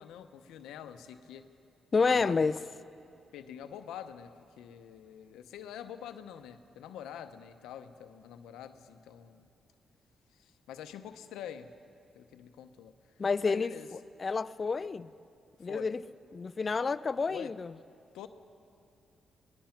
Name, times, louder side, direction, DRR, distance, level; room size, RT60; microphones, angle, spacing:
voice 1, 0.0-1.5 2.1-2.5 3.3-9.5 10.3-11.7 12.1-12.9 13.4-13.9 15.7-15.9 17.3-17.5 18.1-18.3, left 9 dB, 90° left, 9 dB, 0.9 m, -46 dB
voice 2, 1.9-2.6 13.2-15.1 15.6-16.0 16.3-17.7, left 4 dB, 40° left, 15 dB, 0.6 m, -29 dB
23.5 x 19.0 x 5.9 m, 2.5 s
supercardioid pair, 60°, 0 cm